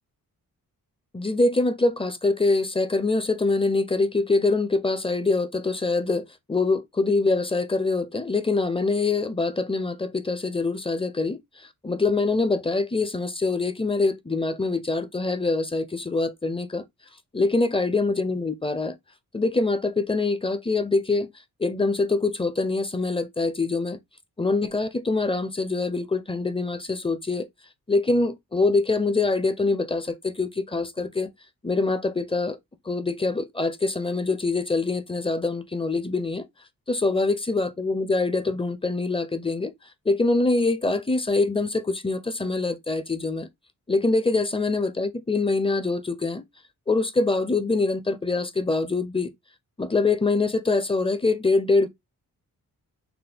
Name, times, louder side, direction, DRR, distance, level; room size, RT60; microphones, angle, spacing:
voice 1, 1.1-16.8 17.3-18.9 19.3-21.3 21.6-24.0 24.4-27.5 27.9-31.3 31.6-32.6 32.9-36.5 36.9-39.7 40.1-43.5 43.9-46.4 46.9-49.3 49.8-51.9, left 3 dB, 15° left, 0.6 m, -24 dB
5.8 x 2.2 x 3.5 m
wide cardioid pair, 125°, 36 cm